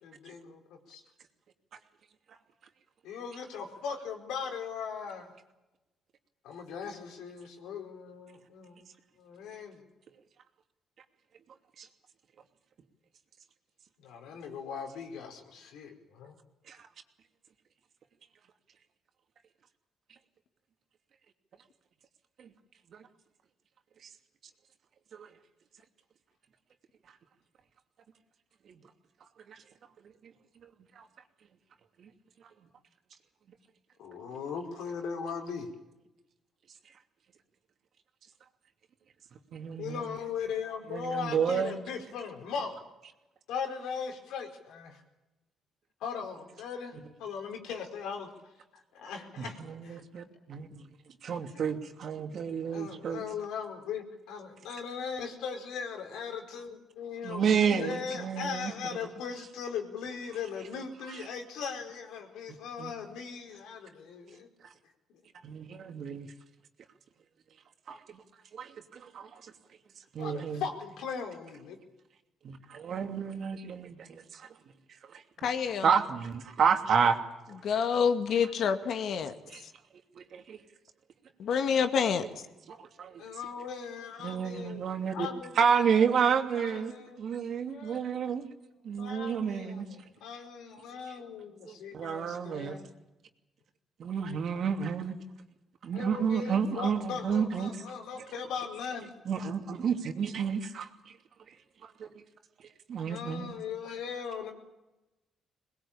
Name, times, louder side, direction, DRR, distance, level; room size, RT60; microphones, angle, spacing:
voice 1, 0.0-1.0 3.0-5.3 6.4-8.9 9.2-9.8 14.0-16.4 34.0-35.7 39.8-42.8 43.5-45.0 46.0-48.3 48.9-49.6 49.8-50.0 51.5-51.6 52.7-64.5 65.1-65.2 70.2-71.8 83.2-84.9 85.1-86.3 86.5-87.2 87.7-88.0 89.0-92.9 95.9-99.1 103.1-104.5, left 6 dB, 90° left, 3 dB, 4.6 m, -39 dB
voice 2, 39.5-40.0 40.9-41.7 49.4-50.8 51.2-53.2 57.2-58.7 62.8-62.9 65.4-66.3 67.9-68.2 68.5-69.4 70.1-70.6 72.4-74.5 75.1-75.2 75.8-77.2 77.5-77.6 79.5-79.6 80.2-80.6 82.7-83.2 84.2-85.3 85.6-86.9 87.2-88.5 88.8-89.9 91.7-92.8 94.0-95.1 95.8-97.7 99.3-100.9 101.8-102.2 102.9-103.6, right 6 dB, 60° right, 5 dB, 2.7 m, -30 dB
voice 3, 75.4-75.9 77.6-79.3 81.4-82.3, left 6 dB, 70° left, 8 dB, 2.2 m, -27 dB
22.0 x 20.5 x 8.8 m, 1.0 s
cardioid pair, 90°, 0 cm